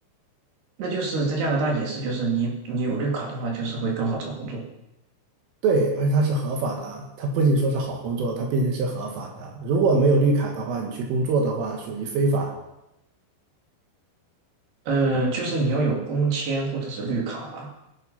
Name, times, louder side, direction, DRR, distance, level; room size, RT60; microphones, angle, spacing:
voice 1, 0.8-4.6 14.9-17.7, right 3 dB, 55° right, -1 dB, 4.7 m, -26 dB
voice 2, 5.6-12.5, right 3 dB, 75° right, 1 dB, 4.3 m, -23 dB
18.0 x 11.5 x 5.9 m, 0.91 s
omnidirectional pair, 6.0 m